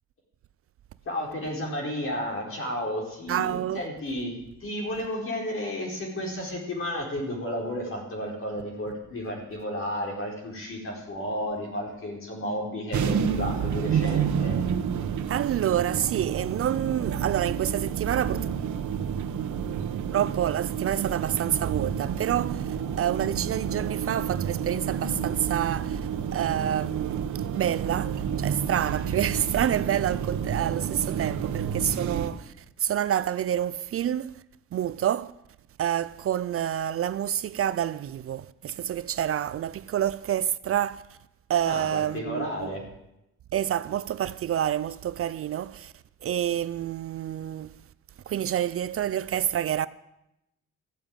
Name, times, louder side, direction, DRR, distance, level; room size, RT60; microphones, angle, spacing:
voice 1, 1.0-14.6 41.7-42.8, left 1 dB, 45° left, 4.5 m, -32 dB
voice 2, 3.3-3.9 15.3-18.5 20.1-26.0 26.3-27.2 27.5-34.4 34.7-35.3 35.8-41.0 41.5-42.8 43.5-45.9 46.2-47.7 48.3-49.9, right 10 dB, 50° right, 0.4 m, -28 dB
sound 1, 12.9-32.3, right 7 dB, 75° right, 1.1 m, -29 dB
14.5 x 8.8 x 8.9 m
cardioid pair, 145°, 29 cm